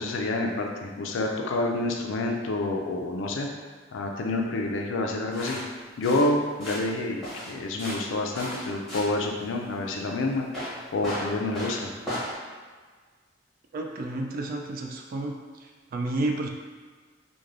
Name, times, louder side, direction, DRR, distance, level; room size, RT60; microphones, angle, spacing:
voice 1, 0.0-3.5 3.9-5.6 6.0-10.5 10.9-11.9, left 2 dB, 80° left, 1 dB, 0.4 m, -28 dB
sound 1, 5.3-12.3, equal, ahead, 0.9 m, -36 dB
voice 2, 13.7-16.5, right 2 dB, 50° right, 2 dB, 0.3 m, -31 dB
3.1 x 2.2 x 2.5 m, 1.5 s
head